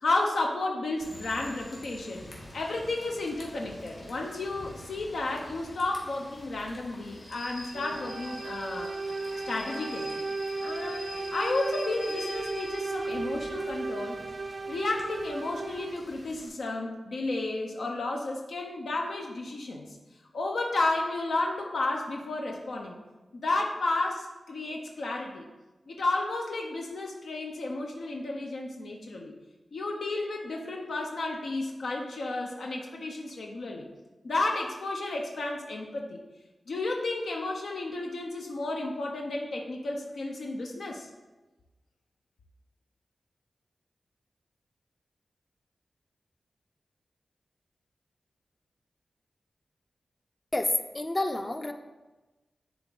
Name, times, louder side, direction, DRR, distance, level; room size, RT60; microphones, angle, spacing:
voice 1, 0.0-2.3 2.5-8.9 9.5-10.2 10.6-14.2 14.6-20.0 20.3-23.0 23.3-25.5 25.9-29.3 29.7-33.9 34.2-36.2 36.7-41.1, left 2 dB, 80° left, 0 dB, 0.8 m, -32 dB
Rain / Train, 1.0-16.5, left 1 dB, 55° left, 1.9 m, -46 dB
sound 1, 7.7-16.1, right 3 dB, 45° right, 0.4 m, -35 dB
voice 2, 50.5-51.7, left 2 dB, 25° left, 7 dB, 0.5 m, -29 dB
10.5 x 3.6 x 3.9 m, 1.1 s
wide cardioid pair, 115°, 0 cm